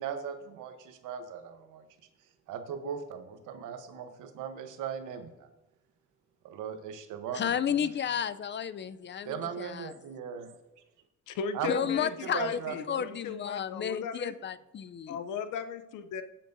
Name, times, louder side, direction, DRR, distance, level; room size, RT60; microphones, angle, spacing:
voice 1, 0.0-1.8 2.5-5.5 6.4-7.9 9.2-10.5 11.5-13.0, right 7 dB, 85° right, 8 dB, 1.0 m, -38 dB
voice 2, 7.3-9.9 11.7-12.6 12.9-15.2, left 8 dB, 40° left, 15 dB, 0.5 m, -32 dB
voice 3, 11.3-14.3 15.1-16.2, left 6 dB, 90° left, 11 dB, 0.7 m, -37 dB
16.5 x 7.5 x 2.6 m, 0.97 s
cardioid pair, 90°, 30 cm